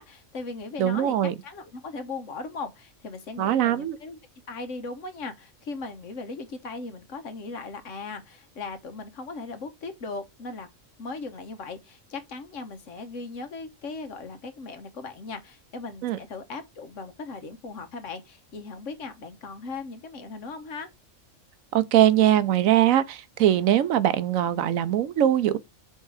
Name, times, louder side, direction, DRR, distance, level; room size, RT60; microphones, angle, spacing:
voice 1, 0.0-4.2 4.5-10.7 11.0-20.9, left 3 dB, 70° left, 1.4 m, -38 dB
voice 2, 0.8-1.3 3.4-4.0 16.0-16.2 21.7-25.6, right 11 dB, 90° right, 1.1 m, -21 dB
5.4 x 3.7 x 4.8 m
omnidirectional pair, 1.4 m